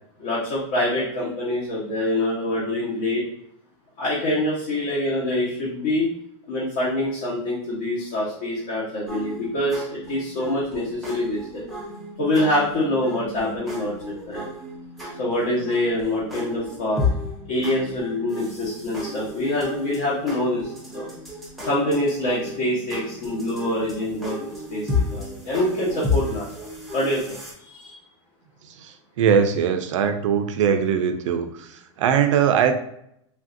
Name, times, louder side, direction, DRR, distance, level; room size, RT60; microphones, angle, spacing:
voice 1, 0.2-3.2 4.0-6.1 6.5-9.8 10.1-11.6 12.2-14.4 15.2-17.0 17.5-20.6 20.9-21.0 21.6-24.4 24.7-24.8 25.1-26.5 26.9-27.9, left 1 dB, 50° left, -7 dB, 0.9 m, -25 dB
sound 1, 9.1-27.5, left 3 dB, ahead, 0.5 m, -33 dB
voice 2, 28.6-32.7, right 7 dB, 80° right, 8 dB, 0.4 m, -21 dB
3.2 x 2.5 x 2.5 m, 0.74 s
supercardioid pair, 170°, 16 cm